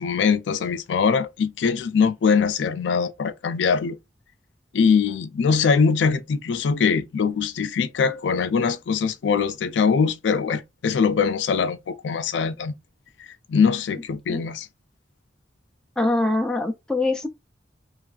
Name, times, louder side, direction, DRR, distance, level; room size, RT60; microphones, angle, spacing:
voice 1, 0.0-4.0 4.7-12.7 13.5-14.7, left 5 dB, 85° left, 0.4 m, -22 dB
voice 2, 16.0-17.3, left 2 dB, 5° left, 0.3 m, -23 dB
3.0 x 2.4 x 2.4 m
head